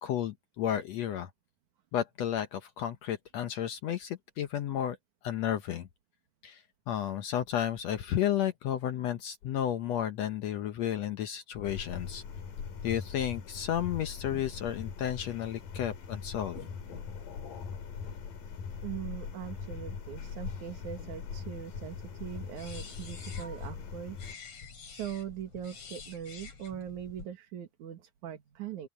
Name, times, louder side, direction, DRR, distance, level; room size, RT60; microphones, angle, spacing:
voice 1, 0.0-1.3 1.9-5.0 5.2-5.9 6.4-12.2 12.8-16.6, left 10 dB, 70° left, 1.8 m, -32 dB
sound 1, 11.6-24.3, left 6 dB, 90° left, 4.5 m, -41 dB
voice 2, 18.8-24.2 24.9-28.9, right 10 dB, 65° right, 3.2 m, -41 dB
sound 2, 22.3-27.3, left 5 dB, 50° left, 4.3 m, -48 dB
open air
omnidirectional pair, 3.7 m